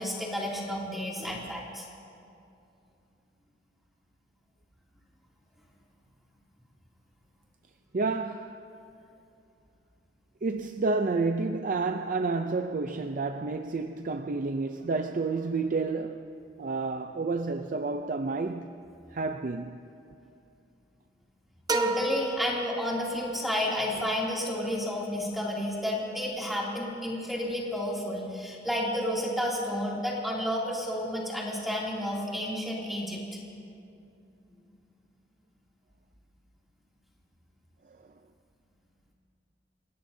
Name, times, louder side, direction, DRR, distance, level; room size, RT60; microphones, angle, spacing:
voice 1, 0.0-1.8 21.7-33.2, equal, ahead, 2.7 m, -31 dB
voice 2, 1.2-1.5 7.9-8.6 10.4-16.2 16.6-18.7 19.1-19.8, right 3 dB, 45° right, 0.5 m, -30 dB
sound 1, 21.7-23.4, right 3 dB, 20° right, 0.8 m, -32 dB
30.0 x 17.0 x 2.7 m
head